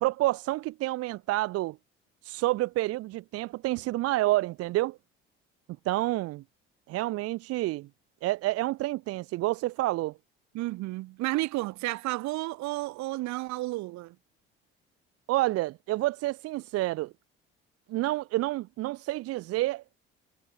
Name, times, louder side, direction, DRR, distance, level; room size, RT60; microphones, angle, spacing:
voice 1, 0.0-1.8 2.2-5.0 5.9-6.4 6.9-7.9 8.2-10.1 15.3-17.1 17.9-19.8, right 17 dB, 55° right, 0.4 m, -29 dB
voice 2, 10.5-14.2, right 19 dB, 70° right, 1.7 m, -32 dB
hypercardioid pair, 60°, 29 cm